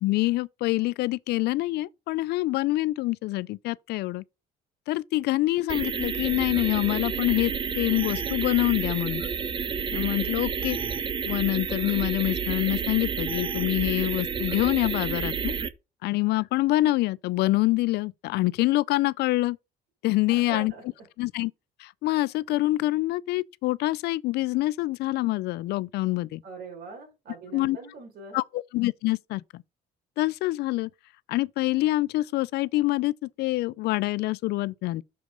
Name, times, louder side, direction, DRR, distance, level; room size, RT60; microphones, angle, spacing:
voice 1, 0.0-4.2 4.9-9.2 9.9-10.8 11.3-15.5 16.0-19.6 20.0-20.7 21.2-21.5 21.8-26.4 27.5-27.8 28.3-29.6 30.2-30.9 31.3-35.0, left 18 dB, 75° left, 0.4 m, -26 dB
sound 1, 5.7-15.7, right 6 dB, 30° right, 0.6 m, -30 dB
voice 2, 20.3-21.1 26.4-28.4, right 4 dB, 65° right, 4.8 m, -42 dB
6.8 x 4.7 x 5.2 m
cardioid pair, 110°, 17 cm